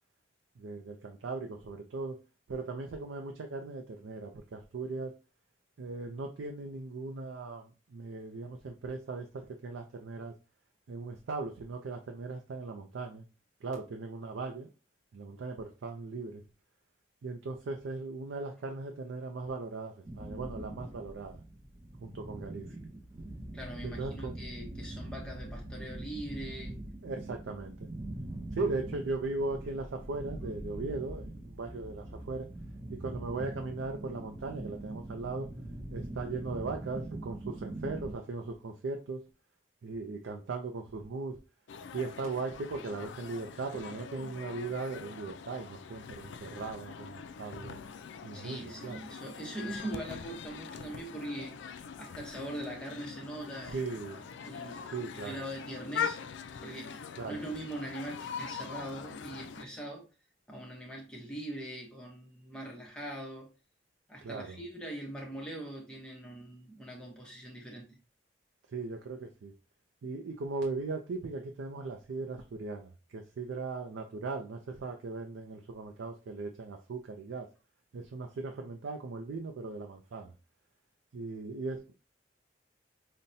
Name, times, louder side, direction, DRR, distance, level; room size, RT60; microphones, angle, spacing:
voice 1, 0.6-2.2 2.5-5.1 5.8-10.3 10.9-13.2 13.6-14.7 15.1-16.4 17.2-21.4 22.0-22.8 23.8-24.3 27.0-27.9 28.5-32.5 33.0-35.5 35.9-39.2 39.8-41.4 41.9-47.8 48.2-49.0 53.7-54.2 54.9-55.5 57.2-57.3 64.2-64.6 68.7-69.5 70.0-77.5 77.9-80.3 81.1-81.9, right 3 dB, 85° right, 0.4 m, -38 dB
sound 1, 20.0-38.1, right 1 dB, 25° right, 0.5 m, -43 dB
voice 2, 23.5-26.8 48.3-56.2 56.6-60.1 60.5-63.5 64.1-68.0, right 1 dB, 5° left, 0.7 m, -42 dB
sound 2, 41.7-59.6, left 7 dB, 75° left, 0.3 m, -43 dB
5.4 x 2.1 x 2.6 m
head